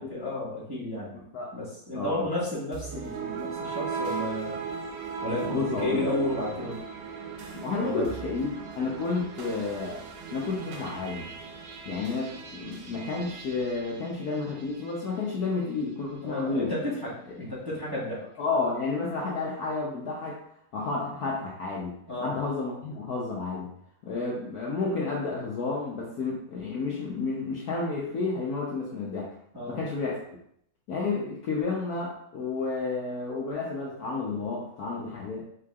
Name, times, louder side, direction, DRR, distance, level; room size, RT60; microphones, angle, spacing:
voice 1, 0.0-1.1 1.5-4.6 5.2-6.8 7.8-8.1 16.2-17.1 17.4-18.2 22.1-22.4 29.5-29.8, left 1 dB, 15° right, -9 dB, 1.1 m, -32 dB
voice 2, 1.1-1.5 1.9-2.3 5.5-6.1 7.5-8.5 8.8-10.0 10.3-11.3 11.8-16.7 18.4-20.4 20.7-23.7 24.0-29.3 29.7-30.2 30.9-35.4, left 3 dB, 65° left, -4 dB, 1.0 m, -31 dB
sound 1, 2.7-15.0, right 5 dB, 85° right, 1.5 m, -38 dB
5.0 x 3.7 x 2.3 m, 0.70 s
omnidirectional pair, 2.2 m